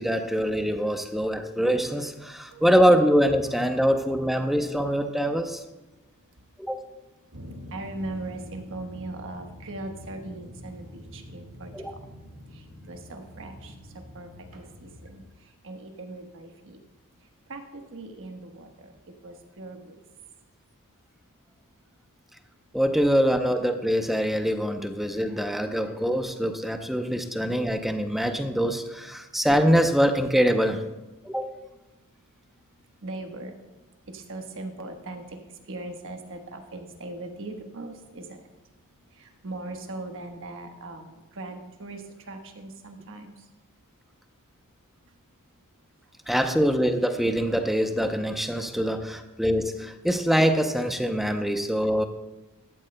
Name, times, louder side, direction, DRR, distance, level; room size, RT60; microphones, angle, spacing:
voice 1, 0.0-5.6 6.6-6.9 11.7-11.9 22.7-30.9 31.2-31.6 46.3-52.0, equal, ahead, 6 dB, 0.6 m, -24 dB
sound 1, 7.3-15.2, left 1 dB, 80° right, 1.8 m, -45 dB
voice 2, 7.7-11.7 12.5-13.7 14.1-14.3 14.5-15.2 15.6-16.8 17.5-18.9 19.2-20.0 33.0-33.6 34.1-35.4 35.6-38.4 39.1-43.3, right 2 dB, 60° right, 4 dB, 1.2 m, -39 dB
14.5 x 12.5 x 2.2 m, 1.1 s
head